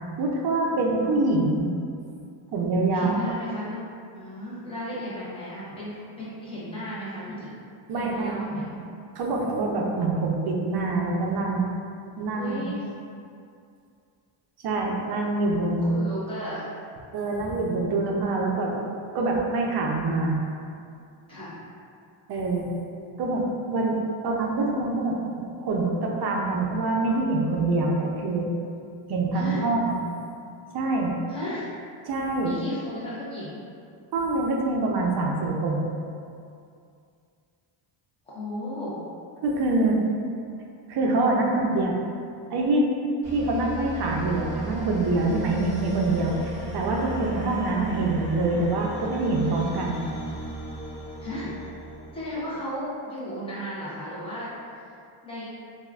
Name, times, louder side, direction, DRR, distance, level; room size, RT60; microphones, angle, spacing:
voice 1, 0.2-1.7 2.5-3.2 7.9-8.8 9.2-11.7 12.2-12.7 14.6-15.9 17.1-18.9 19.1-20.4 22.3-22.7 23.2-24.0 24.2-28.5 29.1-30.0 30.7-31.1 32.1-32.6 34.1-35.9 39.4-40.0 40.9-41.9 42.5-42.9 43.3-50.0, right 2 dB, 55° right, -1 dB, 0.5 m, -25 dB
voice 2, 2.9-3.8 4.1-7.6 7.9-8.7 12.3-12.9 15.8-16.6 17.3-17.6 21.3-21.5 29.3-29.7 31.3-31.8 32.4-33.6 38.3-39.0 51.2-51.5 52.1-54.5 55.2-55.4, equal, 10° left, -9 dB, 0.6 m, -34 dB
sound 1, 43.2-52.7, right 2 dB, 20° right, 1.5 m, -36 dB
3.4 x 2.4 x 2.2 m, 2.4 s
cardioid pair, 170°, 50 cm